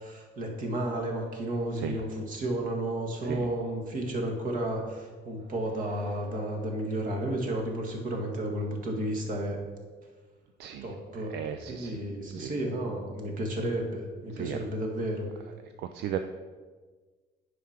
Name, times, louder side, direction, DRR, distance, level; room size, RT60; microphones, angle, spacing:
voice 1, 0.0-9.6 10.8-11.4 11.7-15.3, right 1 dB, 50° right, 1 dB, 1.8 m, -32 dB
voice 2, 11.3-12.0 12.4-12.5 14.4-14.6 15.8-16.2, right 10 dB, 75° right, 7 dB, 0.5 m, -35 dB
9.3 x 5.0 x 5.8 m, 1.4 s
cardioid pair, 150°, 18 cm